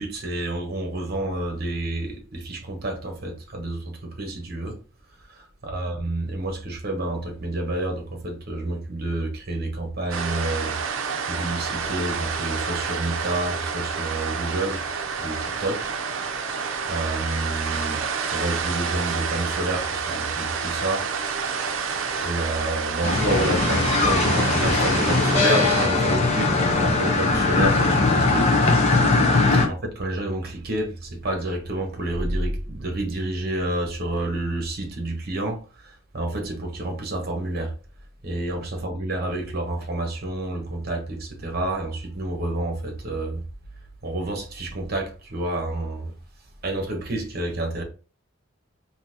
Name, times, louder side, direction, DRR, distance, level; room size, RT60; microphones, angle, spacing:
voice 1, 0.0-4.8 5.3-14.8 15.2-15.9 16.5-16.6 16.9-18.0 18.3-21.9 22.2-28.8 29.5-37.7 38.2-43.4 44.0-46.1 46.6-47.8, right 2 dB, 45° right, 1.0 m, -29 dB
sound 1, 10.1-25.9, right 5 dB, 70° right, 0.6 m, -29 dB
sound 2, 23.0-29.7, left 3 dB, 30° left, 0.7 m, -20 dB
3.8 x 2.8 x 2.7 m
head